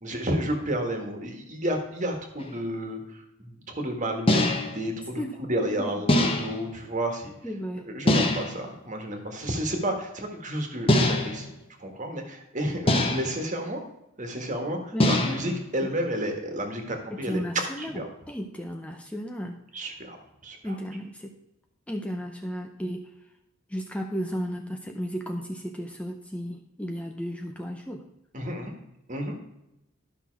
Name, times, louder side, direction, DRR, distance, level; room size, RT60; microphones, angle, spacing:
voice 1, 0.0-5.2 5.5-7.3 7.8-11.5 11.8-13.8 14.2-17.4 17.8-18.1 19.7-20.2 20.4-20.8 28.3-28.7 29.1-29.4, right 1 dB, 35° right, 4 dB, 1.6 m, -31 dB
sound 1, 2.4-2.5 4.3-4.8 6.1-6.7 8.1-8.6 10.9-11.5 12.9-13.4 15.0-15.6, left 1 dB, 25° left, 1.1 m, -23 dB
voice 2, 7.4-7.9 14.9-15.2 17.2-19.6 20.6-21.3 21.9-23.1 23.7-28.0, equal, 5° left, 3 dB, 0.6 m, -34 dB
12.0 x 6.1 x 4.6 m, 0.87 s
head